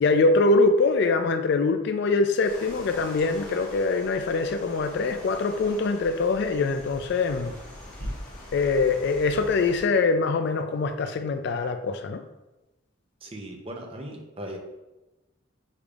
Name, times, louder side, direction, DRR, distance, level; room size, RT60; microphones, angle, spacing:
voice 1, 0.0-7.5 8.5-12.2, left 3 dB, 55° left, 8 dB, 0.3 m, -23 dB
sound 1, 2.4-9.8, left 1 dB, 40° left, 1.2 m, -42 dB
voice 2, 13.2-14.6, right 1 dB, 30° right, 2 dB, 0.6 m, -38 dB
6.7 x 3.3 x 2.4 m, 1.0 s
head